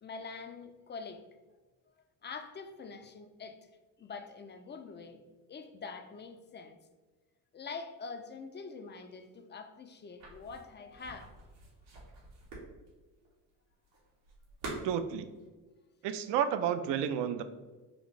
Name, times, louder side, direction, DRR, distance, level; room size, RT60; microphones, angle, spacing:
voice 1, 0.0-1.2 2.2-3.6 4.0-5.2 5.5-6.8 7.5-11.3, left 4 dB, 25° left, 7 dB, 0.4 m, -45 dB
sound 1, 10.2-15.5, right 2 dB, 85° right, 1.3 m, -47 dB
voice 2, 14.8-15.3 16.0-17.4, right 8 dB, 65° right, 10 dB, 0.5 m, -31 dB
4.3 x 2.5 x 3.0 m, 1.3 s
supercardioid pair, 65°, 45 cm